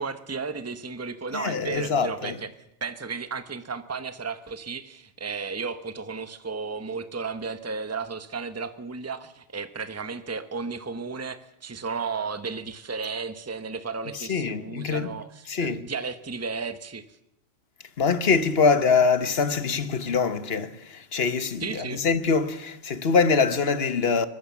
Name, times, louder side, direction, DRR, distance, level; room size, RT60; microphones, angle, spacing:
voice 1, 0.0-2.5 2.8-17.0 21.6-22.0, right 4 dB, 15° right, 0.9 m, -34 dB
voice 2, 1.3-2.4 14.1-15.1 15.5-15.8 18.0-24.3, left 5 dB, 60° left, 1.3 m, -24 dB
23.5 x 20.5 x 7.2 m
omnidirectional pair, 1.2 m